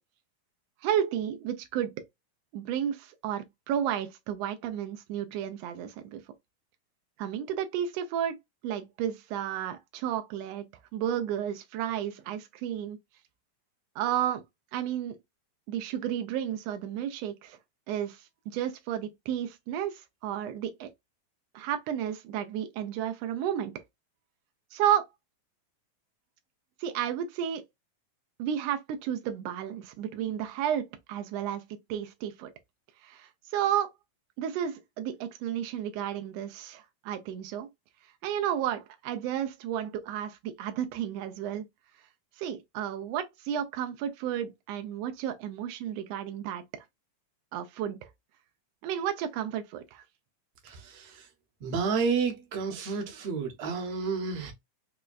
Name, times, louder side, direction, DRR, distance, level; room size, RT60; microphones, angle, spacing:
voice 1, 0.8-2.0 2.5-6.2 7.2-8.4 8.6-10.7 10.9-13.0 13.9-14.4 14.7-15.2 15.7-17.6 17.9-20.9 21.5-23.7 24.7-25.1 26.8-27.6 28.4-31.6 31.9-32.5 33.0-33.9 34.4-37.7 38.2-41.6 42.4-46.8 47.5-48.1 48.8-50.0, right 10 dB, 85° right, 1.4 m, -32 dB
voice 2, 50.6-51.3 51.6-54.5, right 5 dB, 65° right, 1.9 m, -31 dB
5.0 x 2.2 x 2.2 m
omnidirectional pair, 3.5 m